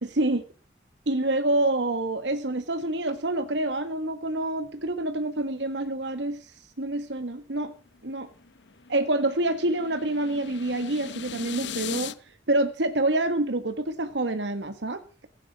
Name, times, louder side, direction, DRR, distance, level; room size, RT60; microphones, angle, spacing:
voice 1, 0.0-0.4 1.1-6.4 6.8-7.7 8.0-8.3 8.9-12.1 12.5-15.0, right 2 dB, 80° right, 9 dB, 1.5 m, -27 dB
sound 1, 7.9-12.1, left 7 dB, 80° left, 0.8 m, -39 dB
15.5 x 10.0 x 7.1 m, 0.36 s
head